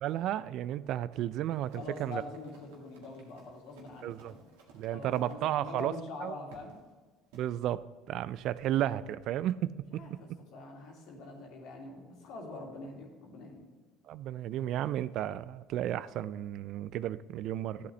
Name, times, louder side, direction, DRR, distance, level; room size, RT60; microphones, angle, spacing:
voice 1, 0.0-2.2 4.0-4.3 4.7-5.9 6.2-6.3 7.3-10.2 14.1-17.9, right 12 dB, 60° right, 17 dB, 0.3 m, -33 dB
Run, 1.5-5.4 5.8-6.0 6.5-6.8 7.3-7.5, right 3 dB, 80° right, 1.7 m, -58 dB
voice 2, 1.7-4.4 4.9-6.7 9.9-13.6, left 2 dB, 70° left, 0 dB, 2.4 m, -44 dB
12.5 x 8.3 x 3.2 m, 1.4 s
supercardioid pair, 85°, 0 cm